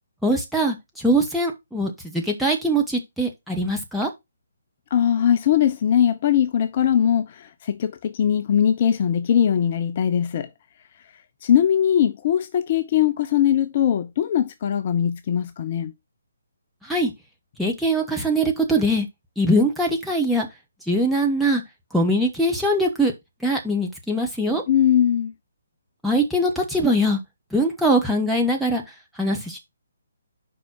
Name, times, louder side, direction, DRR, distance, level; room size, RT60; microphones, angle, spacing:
voice 1, 0.2-4.1 16.8-17.1 17.6-19.1 19.4-20.5 20.9-21.6 21.9-23.1 23.4-24.6 26.0-27.2 27.5-28.8 29.2-29.6, right 1 dB, ahead, 1.4 m, -22 dB
voice 2, 4.9-10.5 11.4-15.9 24.7-25.3, left 9 dB, 35° left, 0.6 m, -20 dB
5.5 x 4.4 x 6.2 m
figure-of-eight pair, 140°, 0 cm